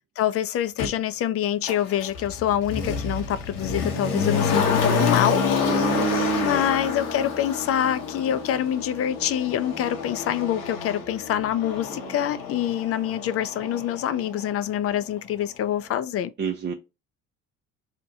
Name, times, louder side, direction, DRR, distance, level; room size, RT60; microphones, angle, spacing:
voice 1, 0.2-5.7 6.4-16.3, left 11 dB, 45° left, 0.4 m, -26 dB
Motor vehicle (road), 0.8-0.9 1.6-14.6 14.8-14.9, left 5 dB, 80° left, 0.8 m, -28 dB
voice 2, 5.7-6.7 16.4-16.7, right 6 dB, 30° right, 0.5 m, -27 dB
2.7 x 2.1 x 2.6 m
hypercardioid pair, 65°, 34 cm